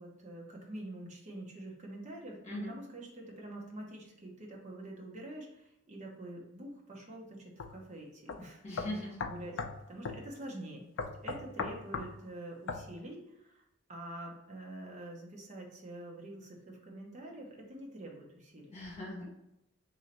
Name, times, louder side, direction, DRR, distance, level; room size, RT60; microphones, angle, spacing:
voice 1, 0.0-8.6 9.2-9.6 9.9-13.6 13.9-18.8, right 1 dB, 35° right, -1 dB, 0.8 m, -46 dB
sound 1, 7.6-7.7 8.3-8.4 8.8-9.8 10.0-10.2 11.0-12.1 12.7-12.8, left 5 dB, 65° left, 0.4 m, -37 dB
voice 2, 8.6-9.2 18.7-19.3, left 1 dB, 30° left, -5 dB, 1.4 m, -39 dB
3.1 x 2.7 x 4.2 m, 0.88 s
head